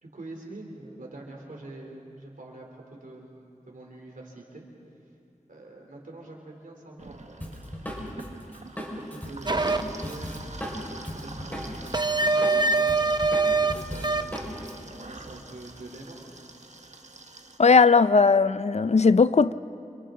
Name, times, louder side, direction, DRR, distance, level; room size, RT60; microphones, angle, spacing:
voice 1, 0.0-4.6 5.5-10.4 10.8-16.2, right 2 dB, 90° right, -1 dB, 3.3 m, -45 dB
sound 1, 7.0-17.6, right 2 dB, 60° right, 1.4 m, -45 dB
Drum kit, 7.4-11.9 12.2-14.7, equal, 10° left, 5.1 m, -37 dB
sound 2, 9.5-9.8 11.9-13.7 14.0-14.4, right 3 dB, 35° right, 0.8 m, -23 dB
voice 2, 17.6-19.5, left 4 dB, 55° left, 15 dB, 0.5 m, -18 dB
29.5 x 27.0 x 3.8 m, 2.6 s
wide cardioid pair, 45°, 14 cm